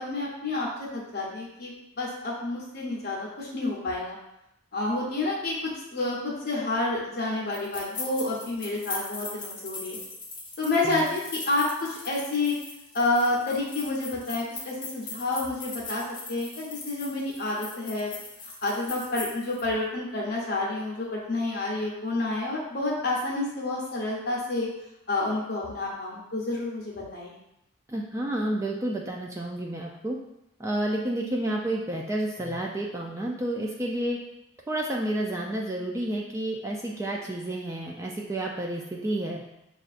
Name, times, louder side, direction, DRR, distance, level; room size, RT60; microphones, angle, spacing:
voice 1, 0.0-4.2 4.7-10.0 10.6-12.6 12.9-16.0 16.3-18.1 18.6-24.7 25.1-27.4, left 2 dB, 50° left, -4 dB, 0.8 m, -29 dB
sound 1, 7.5-19.6, left 3 dB, 25° left, 0.9 m, -40 dB
voice 2, 27.9-30.2 30.6-34.2 34.7-39.4, right 1 dB, 15° right, -1 dB, 0.3 m, -30 dB
6.4 x 2.4 x 2.4 m, 0.84 s
head